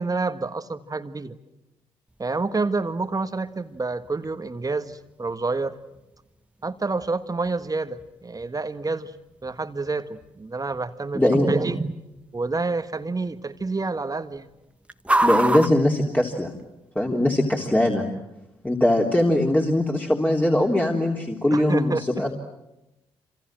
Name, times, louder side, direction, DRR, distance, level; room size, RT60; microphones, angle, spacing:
voice 1, 0.0-1.4 2.2-5.8 6.6-9.2 9.4-11.9 12.3-14.5 21.5-22.3, right 3 dB, 30° right, 10 dB, 1.6 m, -28 dB
sound 1, 2.1-16.9, right 1 dB, 10° right, 1.6 m, -33 dB
voice 2, 11.1-11.5 15.2-16.5 17.0-18.0 18.6-22.3, left 1 dB, 10° left, 0 dB, 3.5 m, -21 dB
27.5 x 27.5 x 7.7 m, 0.95 s
hypercardioid pair, 40°, 13 cm